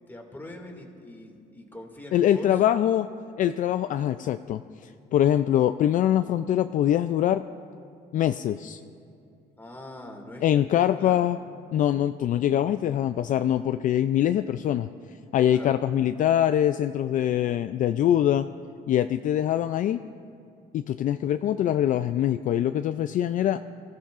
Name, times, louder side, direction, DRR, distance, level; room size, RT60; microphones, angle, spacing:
voice 1, 0.1-2.6 9.6-10.7 11.0-11.3 15.5-15.8, left 1 dB, 10° left, 1 dB, 2.3 m, -42 dB
voice 2, 2.1-3.1 3.4-7.4 8.1-8.8 10.4-11.4 11.7-14.9 15.3-18.5 18.9-20.0 20.7-23.6, left 11 dB, 50° left, 10 dB, 0.4 m, -23 dB
24.5 x 14.5 x 2.5 m, 2.5 s
cardioid pair, 110°, 17 cm